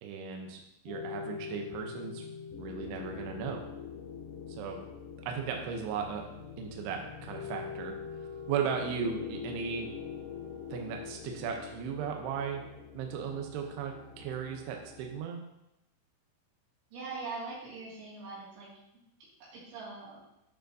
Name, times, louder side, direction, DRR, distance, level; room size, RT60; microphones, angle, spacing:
voice 1, 0.0-2.3 2.6-3.6 4.5-4.8 5.3-6.2 6.6-8.0 8.5-9.9 10.7-12.6 12.9-15.4, right 7 dB, 85° right, 3 dB, 2.4 m, -36 dB
sound 1, 0.9-15.2, left 6 dB, 75° left, 3.8 m, -44 dB
Wind instrument woodwind instrument, 6.6-11.1, left 8 dB, 30° left, 2.9 m, -51 dB
voice 2, 16.9-18.7 19.4-20.2, right 3 dB, 65° right, -6 dB, 4.2 m, -42 dB
9.1 x 6.4 x 2.6 m, 0.86 s
omnidirectional pair, 5.7 m